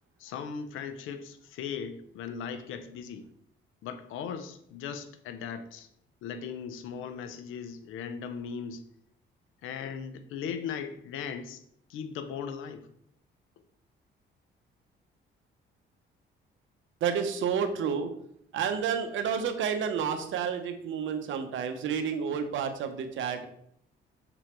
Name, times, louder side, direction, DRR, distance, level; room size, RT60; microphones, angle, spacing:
voice 1, 0.2-3.3 3.8-5.9 6.2-8.9 9.6-11.6 11.9-12.9, left 7 dB, 90° left, 10 dB, 0.7 m, -38 dB
voice 2, 17.0-18.1 18.5-23.5, right 7 dB, 75° right, 7 dB, 0.9 m, -30 dB
6.1 x 3.9 x 4.4 m, 0.70 s
cardioid pair, 90°, 20 cm